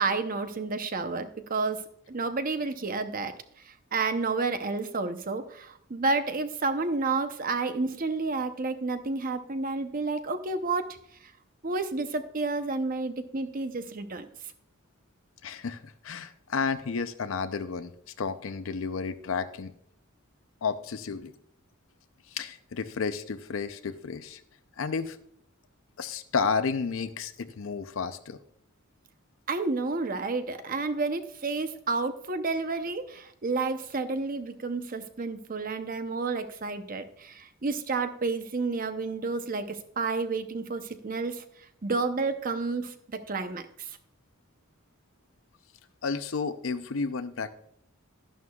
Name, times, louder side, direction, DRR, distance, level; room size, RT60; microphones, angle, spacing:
voice 1, 0.0-1.8 2.1-3.3 3.7-10.9 11.6-14.3 29.5-41.4 41.8-42.9 43.3-44.0, right 3 dB, 40° right, 9 dB, 0.7 m, -30 dB
voice 2, 15.4-17.9 18.2-19.7 20.6-21.3 22.3-24.4 24.8-25.2 26.0-28.4 46.0-47.5, left 5 dB, 65° left, 11 dB, 0.5 m, -31 dB
11.5 x 11.0 x 2.3 m, 0.69 s
head